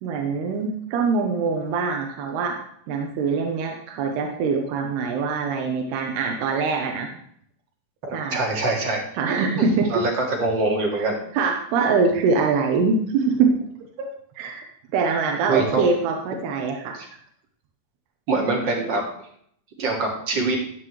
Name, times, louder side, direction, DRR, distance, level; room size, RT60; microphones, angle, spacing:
voice 1, 0.0-2.6 2.9-7.1 8.1-8.5 9.2-10.0 11.0-13.6 14.0-14.1 14.4-14.6 14.9-17.0, right 4 dB, 85° right, 2 dB, 3.1 m, -23 dB
voice 2, 8.3-9.0 9.6-11.2 15.5-15.9 18.3-19.0 19.8-20.6, right 2 dB, 35° right, 0 dB, 2.1 m, -24 dB
13.5 x 9.6 x 3.2 m, 0.64 s
omnidirectional pair, 4.6 m